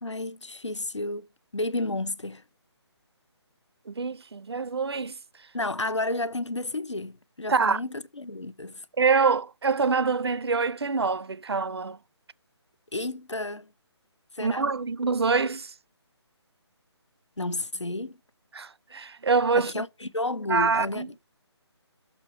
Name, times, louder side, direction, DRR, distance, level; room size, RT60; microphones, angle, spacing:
voice 1, 0.0-1.3 1.5-2.4 5.5-8.8 12.9-13.7 14.3-14.7 17.4-18.2 19.5-21.1, left 2 dB, 90° left, 0.7 m, -31 dB
voice 2, 3.9-5.2 7.5-7.8 9.0-12.0 14.4-15.7 18.5-19.7 20.5-21.1, right 5 dB, 65° right, 0.5 m, -25 dB
6.5 x 5.9 x 5.9 m
figure-of-eight pair, 150°, 15 cm